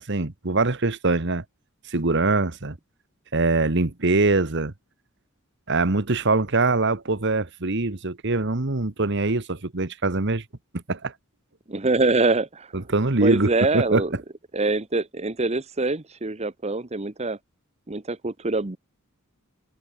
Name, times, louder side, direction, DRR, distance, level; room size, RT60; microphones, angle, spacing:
voice 1, 0.0-1.4 1.9-2.8 3.3-4.7 5.7-10.4 10.7-11.1 12.7-14.0, right 3 dB, 55° right, 1.5 m, -23 dB
voice 2, 11.7-12.7 13.2-14.1 14.5-17.4 17.9-18.8, right 3 dB, 30° right, 1.1 m, -24 dB
head